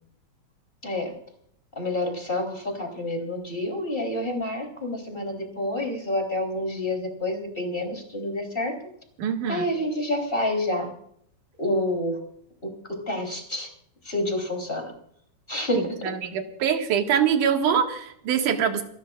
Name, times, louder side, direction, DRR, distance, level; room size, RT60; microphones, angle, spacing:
voice 1, 0.8-1.1 1.7-8.8 9.5-10.9 11.6-12.2 12.6-13.7 14.0-14.9 15.5-16.0, left 1 dB, 15° left, 2 dB, 3.3 m, -28 dB
voice 2, 9.2-9.7 15.7-18.8, right 8 dB, 60° right, 4 dB, 3.0 m, -24 dB
30.0 x 14.0 x 2.4 m, 0.68 s
omnidirectional pair, 4.4 m